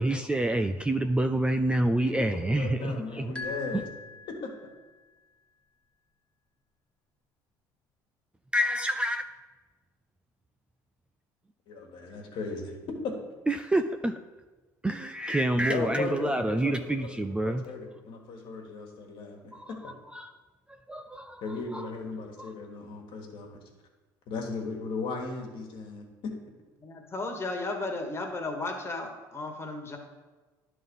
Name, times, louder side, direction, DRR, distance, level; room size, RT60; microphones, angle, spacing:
voice 1, 0.0-3.3 8.5-9.2 13.5-14.2 14.8-17.6 19.5-20.3 20.7-21.9 22.4-22.5, right 1 dB, 10° right, 7 dB, 0.4 m, -28 dB
voice 2, 2.3-3.8 4.3-4.5 11.7-12.8 13.0-13.1 15.7-17.1 17.4-19.9 21.4-23.6 24.3-26.3, left 4 dB, 60° left, 1 dB, 1.7 m, -36 dB
sound 1, 3.3-4.9, left 3 dB, 10° left, 1.2 m, -41 dB
voice 3, 26.8-30.0, left 2 dB, 25° left, 3 dB, 1.6 m, -34 dB
11.0 x 3.8 x 5.4 m, 1.2 s
hypercardioid pair, 70°, 10 cm